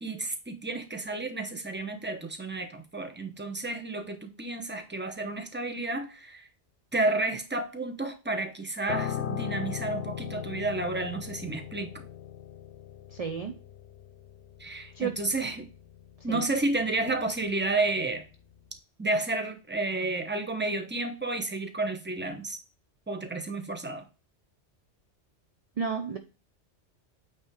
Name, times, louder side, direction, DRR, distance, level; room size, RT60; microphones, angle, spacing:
voice 1, 0.0-6.5 6.9-11.9 14.6-15.7 16.2-18.2 19.0-22.6 23.1-24.0, right 2 dB, 10° right, 1.0 m, -31 dB
Piano, 8.9-18.3 18.5-18.8, left 10 dB, 75° left, 0.9 m, -39 dB
voice 2, 13.1-13.6 14.9-15.2 16.3-16.4 25.8-26.2, right 6 dB, 40° right, 0.6 m, -31 dB
8.6 x 3.3 x 4.7 m
omnidirectional pair, 1.1 m